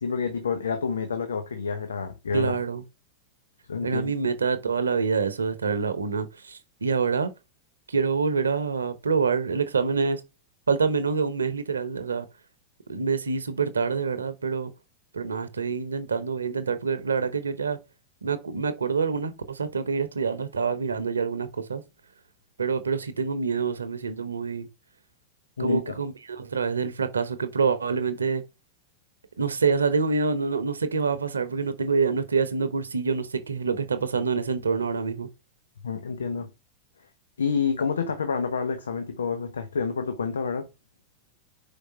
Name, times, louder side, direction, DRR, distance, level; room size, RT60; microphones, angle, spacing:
voice 1, 0.0-2.6 3.7-4.1 25.6-26.0 35.8-36.5 37.4-40.7, left 5 dB, 70° left, 0.8 m, -28 dB
voice 2, 2.3-2.8 3.8-7.3 7.9-10.2 10.7-12.3 12.9-14.7 15.1-17.8 18.2-21.8 22.6-24.7 25.6-28.4 29.4-35.3, right 5 dB, 75° right, 0.9 m, -26 dB
5.1 x 4.8 x 4.4 m
figure-of-eight pair, 90°, 0 cm